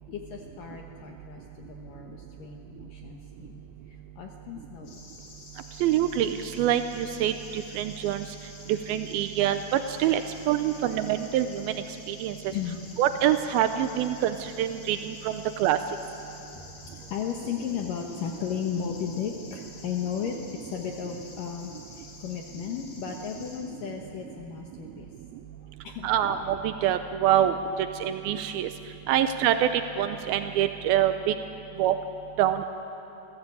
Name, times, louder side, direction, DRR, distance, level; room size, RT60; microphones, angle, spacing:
voice 1, 0.1-5.0 5.4-5.5 12.5-12.8 16.3-25.1 25.6-26.1, left 8 dB, 65° left, 1 dB, 2.2 m, -35 dB
sound 1, 4.8-23.6, left 3 dB, 80° left, 5.8 m, -49 dB
voice 2, 5.8-8.3 8.7-10.2 10.5-11.7 12.1-12.3 13.0-15.8 26.0-27.5 28.0-28.7 29.1-31.3 31.8-32.0 32.4-32.7, right 11 dB, 90° right, 9 dB, 2.1 m, -25 dB
28.5 x 16.5 x 8.4 m, 3.0 s
omnidirectional pair, 5.2 m